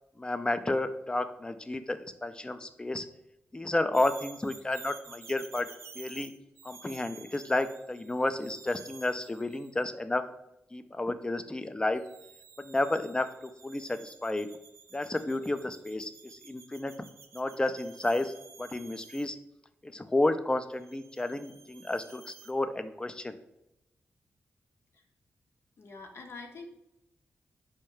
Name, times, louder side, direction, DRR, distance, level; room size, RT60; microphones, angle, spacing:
voice 1, 0.2-3.1 3.5-5.7 5.9-6.3 6.6-10.2 10.7-12.0 12.6-14.5 14.9-16.9 17.3-18.3 18.6-19.4 19.8-23.3, left 2 dB, 20° left, 10 dB, 0.4 m, -31 dB
sound 1, 3.9-9.8 11.9-19.3 20.8-22.5, right 5 dB, 85° right, 0.5 m, -52 dB
voice 2, 25.8-26.7, left 4 dB, 60° left, 2 dB, 0.7 m, -45 dB
4.6 x 2.1 x 4.7 m, 0.88 s
cardioid pair, 60°, 5 cm